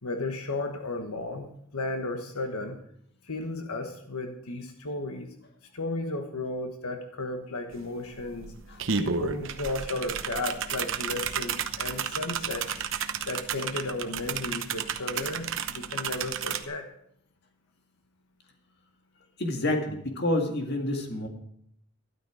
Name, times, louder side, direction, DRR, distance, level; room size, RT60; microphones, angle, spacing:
voice 1, 0.0-2.8 3.2-5.3 5.7-8.5 9.0-12.7 13.2-16.9, left 2 dB, 85° left, 5 dB, 1.3 m, -34 dB
sound 1, 7.7-7.8 8.1-16.6, right 6 dB, 60° right, 0.9 m, -32 dB
voice 2, 19.4-21.3, left 1 dB, 50° left, 3 dB, 2.0 m, -28 dB
12.5 x 12.5 x 4.9 m, 0.70 s
head